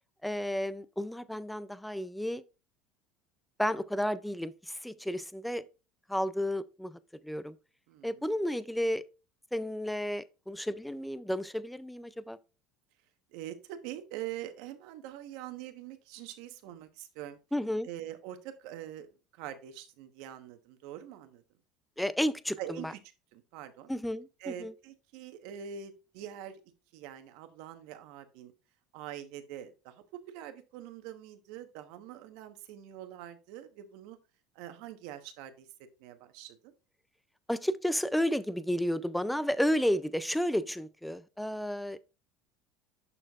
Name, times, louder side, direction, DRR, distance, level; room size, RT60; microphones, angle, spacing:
voice 1, 0.2-2.4 3.6-5.6 6.1-7.5 8.0-9.0 9.5-12.4 17.5-17.9 22.0-22.9 23.9-24.7 37.5-42.0, equal, 5° left, 0.3 m, -32 dB
voice 2, 7.9-8.3 13.3-17.4 17.8-19.1 19.4-21.4 22.6-23.0 23.3-23.9 24.4-26.6 26.9-28.5 28.9-34.2 34.5-35.7 36.0-36.7, right 11 dB, 70° right, 1.0 m, -44 dB
11.0 x 4.4 x 2.4 m
supercardioid pair, 120°, 0 cm